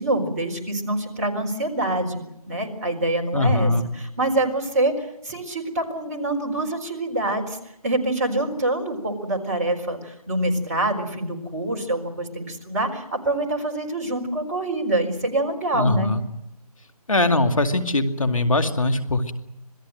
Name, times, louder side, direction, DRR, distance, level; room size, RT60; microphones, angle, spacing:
voice 1, 0.0-16.1, right 1 dB, 25° right, 1 dB, 4.2 m, -26 dB
voice 2, 3.3-3.8 15.7-16.2 17.1-19.3, left 2 dB, 60° left, 7 dB, 2.3 m, -21 dB
26.5 x 20.0 x 7.7 m, 0.83 s
figure-of-eight pair, 160°, 20 cm